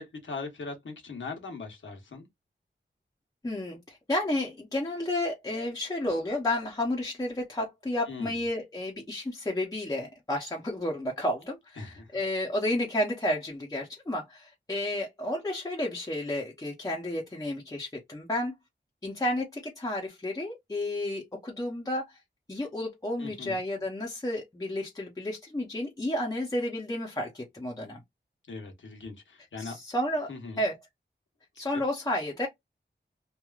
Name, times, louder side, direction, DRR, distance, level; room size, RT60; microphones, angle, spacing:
voice 1, 0.0-2.3 8.1-8.4 11.8-12.2 23.2-23.6 28.5-29.8 30.3-30.6 31.5-31.8, left 4 dB, 90° left, 1.0 m, -40 dB
voice 2, 3.4-18.5 19.0-22.2 22.5-28.0 29.6-30.3 30.6-30.8 31.6-32.5, left 1 dB, 20° left, 0.7 m, -31 dB
2.9 x 2.4 x 2.4 m
wide cardioid pair, 100°, 19 cm